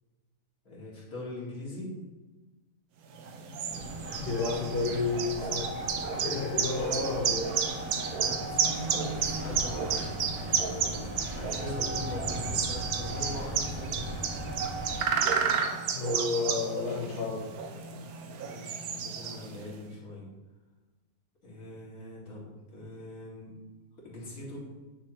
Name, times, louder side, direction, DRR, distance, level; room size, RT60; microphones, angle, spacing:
voice 1, 0.6-1.9 8.0-10.1 10.4-11.0 11.3-14.0 18.4-20.3 21.4-23.6 24.0-24.6, left 1 dB, 75° left, -6 dB, 2.7 m, -42 dB
sound 1, 3.1-19.7, right 6 dB, 80° right, 1.2 m, -32 dB
sound 2, 3.7-15.0, equal, 10° right, 1.0 m, -38 dB
voice 2, 4.2-5.7 6.2-7.5 15.9-17.5, left 3 dB, 40° left, -3 dB, 1.4 m, -31 dB
10.0 x 6.4 x 3.0 m, 1.2 s
omnidirectional pair, 1.5 m